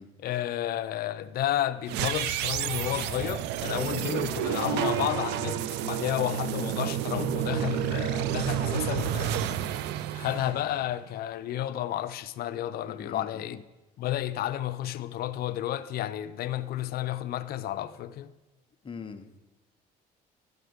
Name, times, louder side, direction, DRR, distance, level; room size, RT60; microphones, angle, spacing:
voice 1, 0.2-9.4 10.1-13.6 14.0-18.3, left 12 dB, 65° left, 0.6 m, -31 dB
sound 1, 1.9-11.1, right 11 dB, 90° right, 0.5 m, -30 dB
voice 2, 12.9-13.6 18.8-19.4, left 5 dB, 30° left, 0.9 m, -42 dB
12.0 x 4.9 x 8.0 m
cardioid pair, 110°, 17 cm